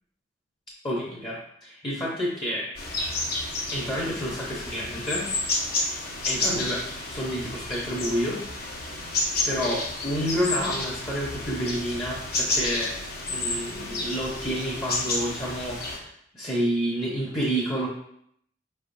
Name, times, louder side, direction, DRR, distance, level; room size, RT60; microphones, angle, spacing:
voice 1, 0.8-2.7 3.7-5.3 6.3-6.8 7.1-8.4 9.4-12.9 13.3-16.0 16.3-17.9, equal, 25° left, -5 dB, 0.8 m, -29 dB
sound 1, 2.7-16.0, left 2 dB, 55° left, 0.7 m, -30 dB
5.0 x 3.4 x 2.6 m, 0.68 s
head